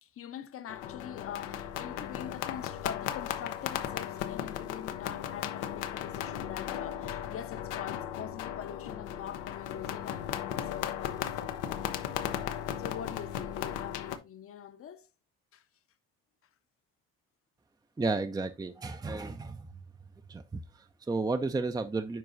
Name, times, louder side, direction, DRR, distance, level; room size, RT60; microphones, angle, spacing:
voice 1, 0.0-11.9 12.8-15.1 15.5-15.6, left 9 dB, 50° left, 0.9 m, -44 dB
sound 1, 0.7-14.2, left 10 dB, 80° left, 0.7 m, -36 dB
voice 2, 18.0-19.7 20.3-22.2, right 3 dB, 15° right, 0.6 m, -33 dB
9.4 x 4.7 x 2.6 m
hypercardioid pair, 65°, 29 cm